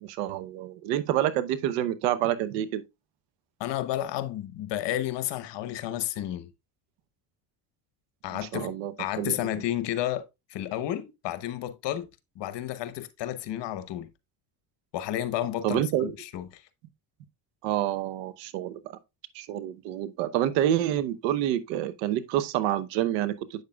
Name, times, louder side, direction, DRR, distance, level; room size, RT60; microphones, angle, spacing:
voice 1, 0.0-2.8 8.5-9.3 15.6-16.1 17.6-18.8 19.3-23.6, right 12 dB, 90° right, 0.9 m, -28 dB
voice 2, 3.6-6.5 8.2-8.7 9.0-10.2 10.5-12.1 12.4-14.1 14.9-16.6, left 12 dB, 60° left, 1.1 m, -31 dB
8.2 x 6.5 x 2.2 m
supercardioid pair, 85°, 48 cm